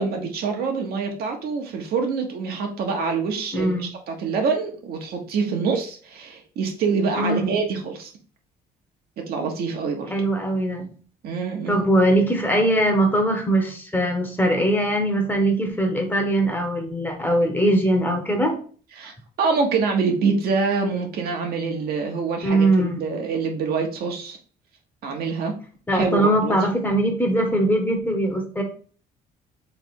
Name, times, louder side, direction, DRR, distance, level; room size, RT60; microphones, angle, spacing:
voice 1, 0.0-8.1 9.2-10.1 11.2-11.8 19.0-19.1 19.4-24.4 25.0-25.5 25.9-26.5, right 5 dB, 65° right, 3 dB, 1.1 m, -25 dB
voice 2, 3.5-3.9 7.2-7.5 10.1-10.9 11.7-18.6 22.4-23.0 25.9-28.6, right 1 dB, 10° left, 4 dB, 1.0 m, -21 dB
3.4 x 3.4 x 4.3 m, 0.42 s
cardioid pair, 110°, 17 cm